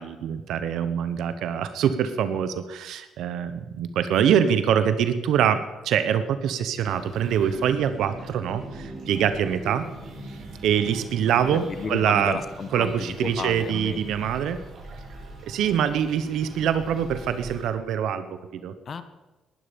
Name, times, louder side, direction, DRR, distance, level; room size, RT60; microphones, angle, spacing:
voice 1, 0.0-9.9 10.3-10.4 10.6-12.4 12.7-14.6 15.4-18.7, right 8 dB, 80° right, 11 dB, 1.0 m, -24 dB
sound 1, 6.8-17.6, right 2 dB, 60° right, 6.0 m, -41 dB
voice 2, 11.5-14.3 18.9-19.0, left 6 dB, 50° left, 12 dB, 1.3 m, -33 dB
19.5 x 11.5 x 5.3 m, 1.1 s
cardioid pair, 90°, 0 cm